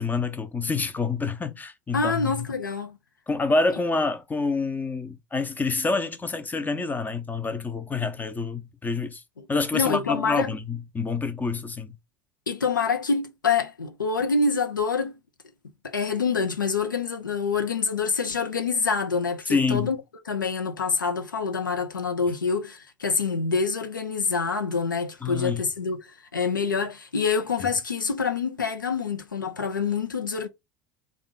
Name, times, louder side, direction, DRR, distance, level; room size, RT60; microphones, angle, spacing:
voice 1, 0.0-2.5 3.3-9.2 9.5-12.0 19.5-19.9 25.2-25.6, left 3 dB, 15° left, 0.7 m, -27 dB
voice 2, 1.9-3.0 9.4-9.5 9.7-10.5 12.5-15.1 15.8-20.0 20.3-30.5, left 5 dB, 90° left, 0.7 m, -26 dB
3.5 x 2.4 x 3.7 m
figure-of-eight pair, 75°, 10 cm